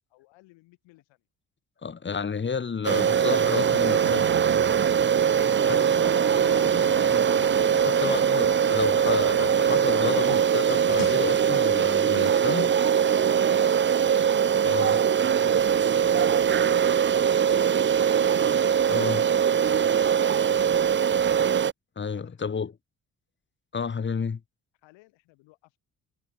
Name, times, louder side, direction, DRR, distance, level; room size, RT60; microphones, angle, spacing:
voice 1, 0.1-1.2 22.0-22.7 24.8-25.8, left 21 dB, 80° left, 4.7 m, -59 dB
voice 2, 1.8-4.3 5.7-5.8 7.8-12.7 14.6-15.0 18.9-19.2 22.0-22.7 23.7-24.4, left 5 dB, 25° left, 0.9 m, -31 dB
sound 1, 2.8-21.7, right 8 dB, 25° right, 0.5 m, -22 dB
Strum, 4.0-7.9, right 17 dB, 75° right, 1.9 m, -44 dB
sound 2, 5.3-10.4 10.7-11.2, left 9 dB, 45° left, 1.5 m, -40 dB
hypercardioid pair, 45°, 44 cm